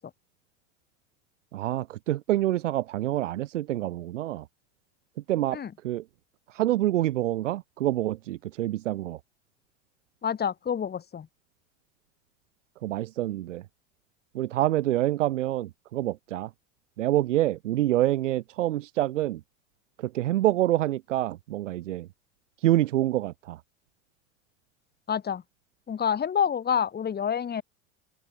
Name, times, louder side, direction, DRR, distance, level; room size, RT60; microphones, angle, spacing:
voice 1, 1.5-4.5 5.3-5.6 5.8-6.0 6.5-9.2 12.8-13.6 14.3-16.5 17.0-19.4 20.0-22.1 22.6-23.6, right 14 dB, 75° right, 2.1 m, -26 dB
voice 2, 10.2-11.3 25.1-25.4 25.9-27.6, left 8 dB, 25° left, 2.6 m, -27 dB
open air
hypercardioid pair, 90°, 37 cm